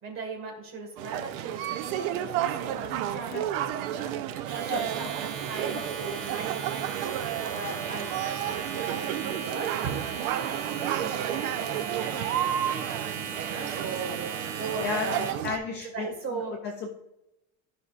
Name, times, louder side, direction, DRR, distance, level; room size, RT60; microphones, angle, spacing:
voice 1, 0.0-8.1 8.5-13.0 13.4-14.2 14.6-15.4 15.9-16.5, right 4 dB, 30° right, 1 dB, 1.8 m, -39 dB
sound 1, 1.0-15.6, right 11 dB, 75° right, 0.7 m, -32 dB
Domestic sounds home sounds, 4.4-15.5, right 6 dB, 45° right, 1.4 m, -37 dB
voice 2, 4.7-5.1 5.7-5.8 14.8-16.9, left 5 dB, 25° left, 2 dB, 0.4 m, -34 dB
13.5 x 5.5 x 2.4 m, 0.91 s
cardioid pair, 180°, 42 cm